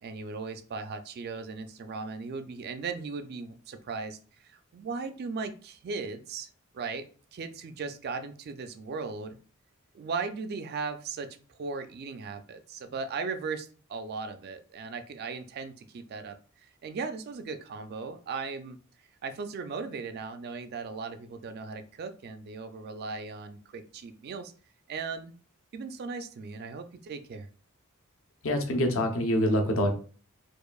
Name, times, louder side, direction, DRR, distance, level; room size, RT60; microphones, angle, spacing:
voice 1, 0.0-6.5 6.7-7.0 7.3-9.4 9.9-16.4 16.6-18.8 19.2-24.5 24.9-25.3 25.7-27.5, right 4 dB, 45° right, 9 dB, 0.3 m, -37 dB
voice 2, 28.4-29.9, left 1 dB, 65° left, 5 dB, 0.7 m, -25 dB
4.6 x 2.5 x 2.3 m, 0.39 s
head